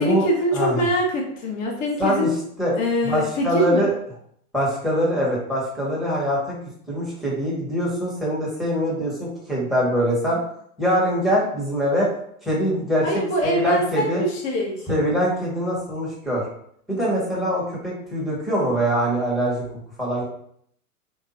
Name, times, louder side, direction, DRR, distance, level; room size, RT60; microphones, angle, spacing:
voice 1, 0.0-2.3 2.7-3.9 13.0-14.8, equal, 20° left, 0 dB, 0.5 m, -23 dB
voice 2, 0.5-0.8 2.0-2.3 2.6-2.7 3.0-3.9 4.5-6.5 6.9-10.4 10.8-12.1 12.4-13.0 13.4-14.2 14.9-16.4 16.9-19.6 20.0-20.2, equal, ahead, -6 dB, 1.1 m, -23 dB
3.6 x 2.7 x 4.1 m, 0.68 s
figure-of-eight pair, 115°, 45 cm